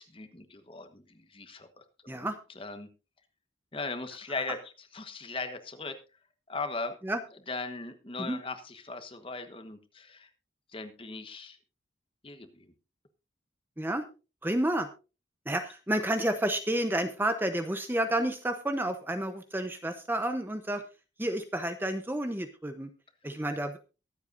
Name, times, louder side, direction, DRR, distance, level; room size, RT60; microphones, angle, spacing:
voice 1, 0.0-2.9 3.7-6.0 6.5-7.0 7.5-10.3 10.7-11.6 12.2-12.7, left 3 dB, 30° left, 8 dB, 1.3 m, -39 dB
voice 2, 14.4-14.9 15.5-20.8 21.2-22.9 23.2-23.8, right 1 dB, 10° right, 8 dB, 0.8 m, -30 dB
23.0 x 8.1 x 2.6 m, 0.31 s
head